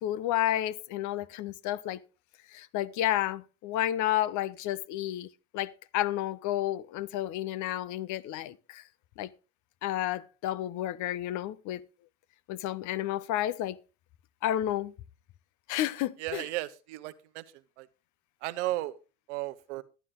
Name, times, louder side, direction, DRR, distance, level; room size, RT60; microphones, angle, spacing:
voice 1, 0.0-2.0 2.5-5.3 5.5-8.8 9.2-9.3 9.8-11.8 12.5-13.8 14.4-14.9 15.7-16.5, left 13 dB, 60° left, 0.7 m, -31 dB
voice 2, 16.2-17.4 17.8-17.9 18.4-19.0 19.3-19.8, right 17 dB, 85° right, 0.9 m, -34 dB
11.5 x 9.7 x 3.8 m
supercardioid pair, 90°, 34 cm